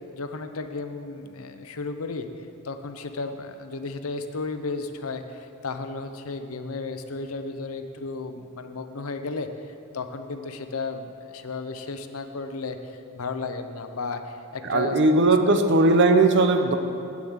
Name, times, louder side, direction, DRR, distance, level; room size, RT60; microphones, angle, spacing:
voice 1, 0.0-2.3 2.6-9.5 9.9-15.0 15.5-15.6, left 3 dB, 75° left, 8 dB, 0.7 m, -34 dB
voice 2, 14.6-16.8, right 2 dB, 55° right, 7 dB, 0.8 m, -18 dB
8.7 x 7.1 x 8.0 m, 2.6 s
head